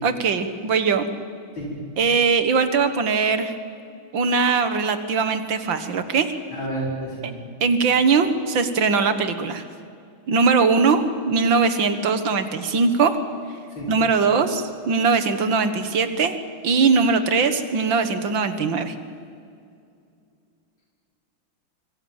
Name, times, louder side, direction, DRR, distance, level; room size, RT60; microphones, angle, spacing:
voice 1, 0.0-1.1 2.0-3.5 4.1-6.3 7.6-9.6 10.3-13.1 13.9-16.4 16.6-19.0, right 5 dB, 70° right, 10 dB, 2.3 m, -20 dB
voice 2, 6.5-7.3 13.7-13.9, right 1 dB, 70° left, -3 dB, 5.8 m, -30 dB
25.5 x 24.0 x 7.3 m, 2.4 s
omnidirectional pair, 2.2 m